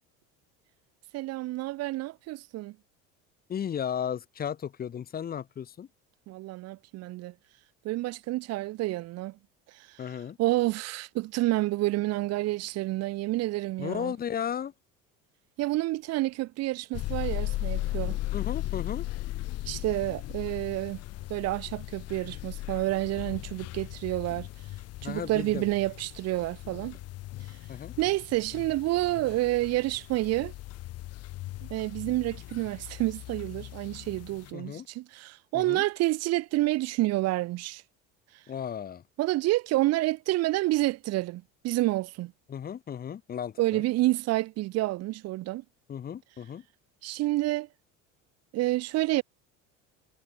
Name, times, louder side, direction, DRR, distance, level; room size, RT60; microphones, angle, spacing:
voice 1, 1.1-2.7 6.3-7.3 7.8-9.4 9.7-10.0 10.4-14.1 15.6-18.2 19.7-21.0 21.3-24.5 25.0-27.0 28.0-30.5 31.6-37.8 39.2-42.3 43.6-45.6 47.0-47.7 48.5-49.2, right 18 dB, 55° right, 5.1 m, -29 dB
voice 2, 3.5-5.9 10.0-10.4 13.8-14.7 18.3-19.1 25.0-25.7 27.7-27.9 34.5-34.9 35.5-35.8 38.5-39.0 42.5-43.8 45.9-46.6, left 8 dB, 30° left, 6.3 m, -35 dB
sound 1, 16.9-34.5, left 17 dB, 55° left, 7.5 m, -37 dB
cardioid pair, 155°, 30 cm